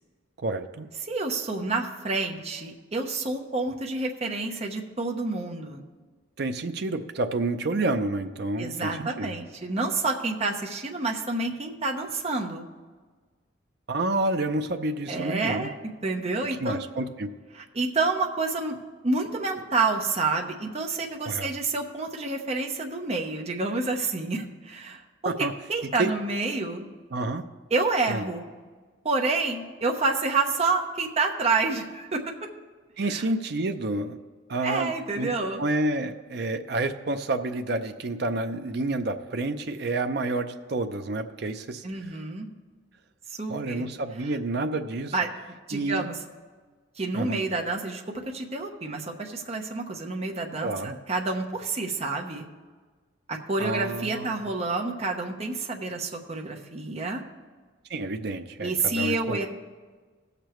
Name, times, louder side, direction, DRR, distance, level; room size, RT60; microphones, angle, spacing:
voice 1, 0.4-0.9 6.4-9.3 13.9-15.7 16.6-17.3 21.3-21.5 25.2-25.5 26.0-26.1 27.1-27.4 28.1-28.2 33.0-34.2 34.5-35.3 35.6-41.8 43.5-45.1 45.7-46.0 47.1-47.5 50.6-51.0 53.6-54.4 57.9-59.5, right 2 dB, 60° right, 7 dB, 0.6 m, -29 dB
voice 2, 1.0-5.8 8.6-12.6 15.1-15.7 16.0-16.8 17.5-18.8 19.0-25.3 25.7-26.9 27.7-28.5 29.0-32.2 33.0-33.3 34.6-35.6 41.8-42.5 43.3-43.9 44.2-44.4 45.1-45.3 45.7-46.2 47.0-48.0 48.3-50.7 51.1-52.5 53.3-57.2 58.6-59.5, right 3 dB, 35° right, 1 dB, 0.9 m, -28 dB
17.5 x 6.7 x 3.1 m, 1.4 s
head